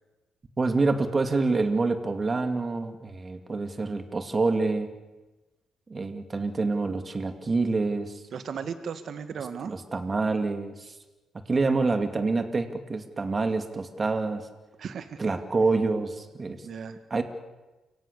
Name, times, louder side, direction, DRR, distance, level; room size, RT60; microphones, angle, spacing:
voice 1, 0.6-4.9 5.9-8.1 9.6-10.9 11.5-14.4 15.2-16.6 17.1-17.2, right 3 dB, 30° right, 7 dB, 2.5 m, -27 dB
voice 2, 8.3-9.7 14.8-15.2 16.6-17.0, right 6 dB, 60° right, 10 dB, 1.9 m, -36 dB
29.5 x 17.0 x 6.9 m, 1.1 s
cardioid pair, 90°, 0 cm